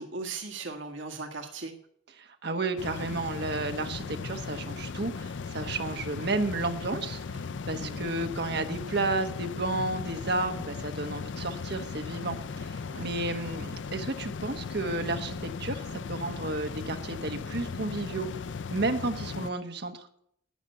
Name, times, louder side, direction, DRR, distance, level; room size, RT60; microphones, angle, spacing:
voice 1, 0.0-1.7 7.8-8.1 12.9-13.1, right 3 dB, 80° right, 3 dB, 1.7 m, -38 dB
voice 2, 2.2-18.3 18.7-20.1, right 2 dB, 60° right, 6 dB, 1.4 m, -32 dB
sound 1, 2.8-19.5, left 5 dB, 70° left, 0.5 m, -37 dB
12.0 x 9.2 x 7.9 m, 0.68 s
head